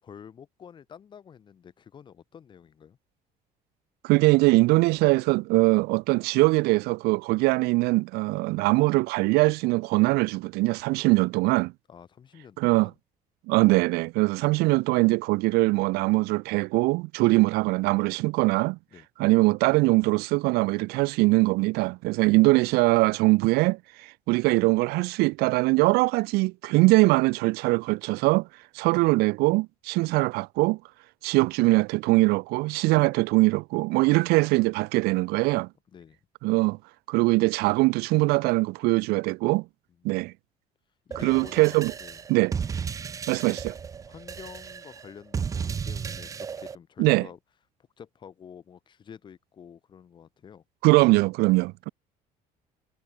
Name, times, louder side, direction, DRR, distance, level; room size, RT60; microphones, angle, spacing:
voice 1, 0.0-3.0 11.1-11.2 11.9-12.9 18.9-19.1 22.2-22.4 28.8-28.9 35.9-36.2 40.0-40.2 41.1-42.2 43.5-43.6 44.0-47.4 48.0-50.6, left 7 dB, 30° left, 5.7 m, -48 dB
voice 2, 4.0-11.7 12.6-12.9 13.5-18.8 19.2-28.5 28.7-30.8 31.2-35.7 36.4-36.8 37.1-39.6 40.0-40.3 41.2-41.9 42.3-42.5 43.3-43.7 47.0-47.3 50.8-51.9, right 23 dB, 85° right, 0.6 m, -22 dB
sound 1, 41.1-46.7, right 6 dB, 20° right, 0.7 m, -34 dB
cardioid pair, 170°, 16 cm